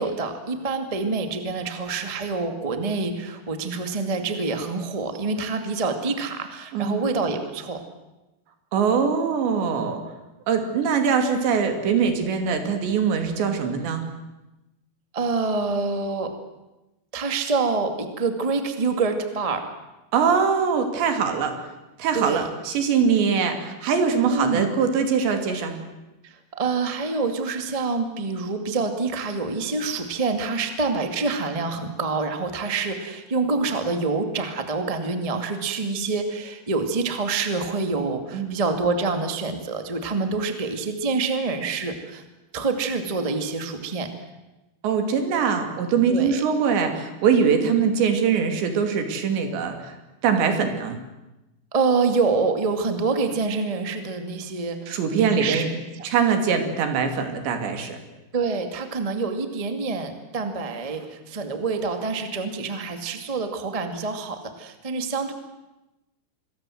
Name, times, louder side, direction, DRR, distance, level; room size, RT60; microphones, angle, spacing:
voice 1, 0.0-7.8 15.1-16.4 17.1-19.7 22.1-22.5 24.2-24.7 26.2-42.2 42.5-44.1 46.1-46.4 51.7-55.7 55.9-56.0 58.3-65.3, right 4 dB, 30° right, 7 dB, 0.6 m, -26 dB
voice 2, 6.7-7.1 8.7-10.0 10.5-14.0 20.1-21.5 22.0-25.7 38.3-38.6 44.8-49.9 50.2-51.0 54.9-55.7 56.0-58.0, right 6 dB, 80° right, 6 dB, 4.9 m, -22 dB
26.5 x 22.0 x 7.8 m, 1.0 s
omnidirectional pair, 5.0 m